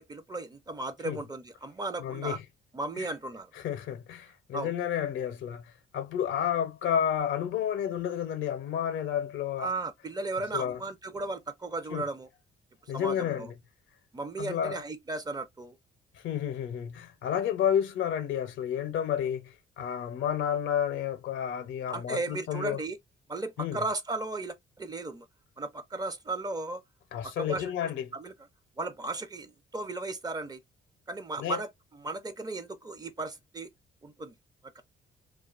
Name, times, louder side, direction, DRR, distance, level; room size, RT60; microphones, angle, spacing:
voice 1, 0.0-2.4 2.7-3.5 4.5-4.7 9.6-12.3 12.9-13.5 14.1-15.8 21.9-23.0 23.3-25.3 25.6-26.8 27.2-27.7 28.1-28.3 28.8-30.6 31.1-33.7 34.0-34.3 34.8-34.9, right 2 dB, 20° right, 0.5 m, -35 dB
voice 2, 2.0-2.4 3.0-3.1 3.5-9.7 10.5-10.8 11.9-12.0 12.9-13.5 14.4-14.8 16.2-22.8 23.6-23.8 27.1-28.1 31.4-31.6, left 9 dB, 75° left, 0.6 m, -31 dB
2.4 x 2.2 x 2.3 m
cardioid pair, 90°, 20 cm